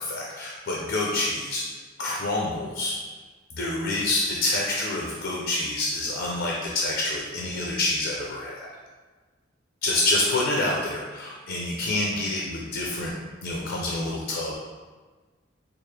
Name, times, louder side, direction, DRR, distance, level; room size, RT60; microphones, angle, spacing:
voice 1, 0.0-1.6 2.0-3.0 3.5-8.7 9.8-13.1 13.4-14.6, left 2 dB, 60° left, -2 dB, 0.5 m, -27 dB
4.5 x 2.0 x 3.2 m, 1.4 s
head